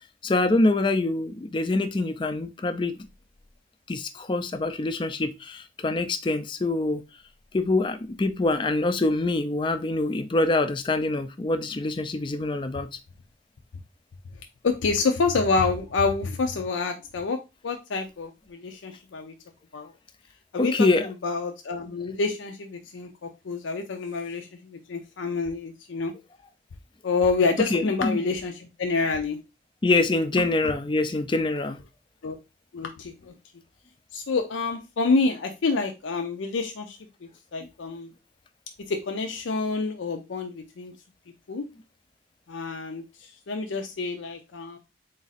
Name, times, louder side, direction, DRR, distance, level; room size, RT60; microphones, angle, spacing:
voice 1, 0.2-3.0 3.9-7.0 7.5-12.9 20.6-21.1 27.7-28.2 29.8-31.8, left 2 dB, 25° left, 0.4 m, -25 dB
voice 2, 14.6-17.4 17.6-19.3 19.7-19.9 20.5-26.1 27.0-29.4 30.4-30.7 32.2-32.3 32.7-33.3 34.1-38.1 38.9-40.9 41.5-41.6 42.5-44.8, left 4 dB, 85° left, 0.5 m, -28 dB
3.9 x 2.5 x 4.1 m
head